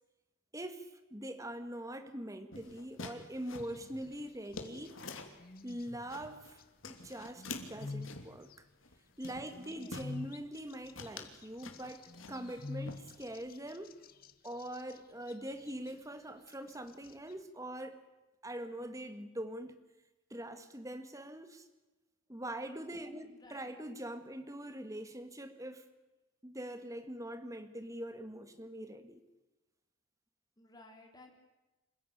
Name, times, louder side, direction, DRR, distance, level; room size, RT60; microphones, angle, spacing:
voice 1, 0.5-5.0 5.6-8.7 9.2-14.0 14.4-18.0 18.4-19.8 20.3-21.7 22.3-25.9 26.4-29.2, right 1 dB, 15° right, 9 dB, 1.9 m, -43 dB
sound 1, 2.5-5.4 5.8-6.5 6.8-8.4 8.8-9.0 9.2-10.1 10.5-10.7 10.9-12.6 12.9-13.5, left 3 dB, 75° left, 3.1 m, -47 dB
sound 2, 3.6-4.2 4.5-5.1 5.4-6.6 7.1-8.5 9.2-15.0 15.3-15.9 16.5-17.3, left 3 dB, 45° left, 1.4 m, -47 dB
voice 2, 9.7-10.0 23.3-23.7 30.6-31.3, left 2 dB, 20° left, 2 dB, 4.4 m, -57 dB
27.5 x 16.0 x 9.9 m, 1.1 s
head